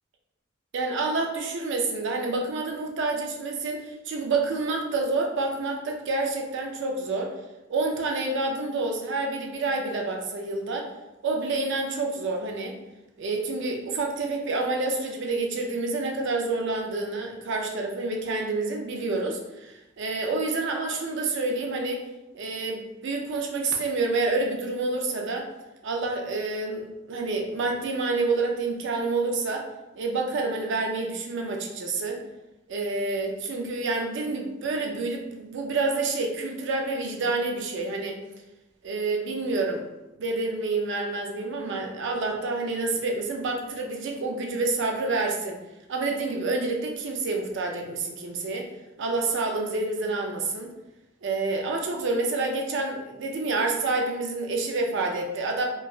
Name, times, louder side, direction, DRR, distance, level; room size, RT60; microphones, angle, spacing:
voice 1, 0.7-7.3 7.7-10.9 11.2-12.7 13.2-22.0 22.3-25.5 25.8-29.7 29.9-32.2 32.7-38.2 38.8-39.8 40.2-45.6 45.9-48.7 49.0-50.7 51.2-55.6, right 3 dB, 65° right, 2 dB, 0.5 m, -28 dB
3.0 x 2.3 x 2.4 m, 1.0 s
head